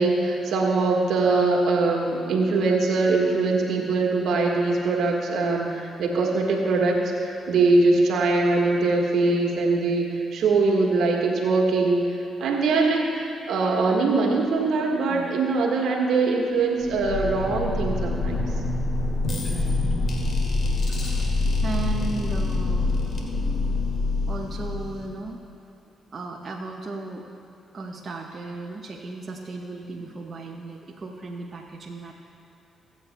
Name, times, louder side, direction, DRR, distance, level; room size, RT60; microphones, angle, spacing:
voice 1, 0.0-12.1 12.4-18.5, right 3 dB, 70° right, 0 dB, 1.5 m, -22 dB
sound 1, 16.8-25.3, left 2 dB, 55° left, 2.0 m, -25 dB
voice 2, 19.3-19.8 20.9-21.3 21.6-23.0 24.3-25.4 26.1-27.2 27.7-32.1, right 3 dB, 45° right, -1 dB, 1.1 m, -35 dB
24.0 x 8.5 x 2.2 m, 2.9 s
hypercardioid pair, 45°, 0 cm